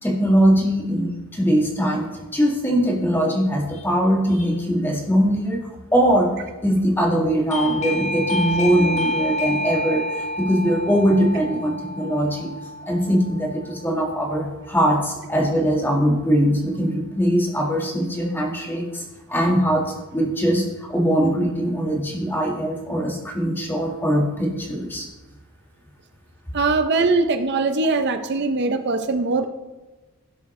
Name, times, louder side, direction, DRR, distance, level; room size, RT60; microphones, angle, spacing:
voice 1, 0.0-6.3 6.6-12.5 12.8-19.0 19.3-25.1, equal, 10° left, 0 dB, 1.6 m, -21 dB
Doorbell, 7.5-14.0, left 1 dB, 30° left, 0.7 m, -28 dB
voice 2, 26.5-29.5, right 3 dB, 50° right, 7 dB, 0.6 m, -21 dB
16.5 x 7.2 x 3.2 m, 1.2 s
head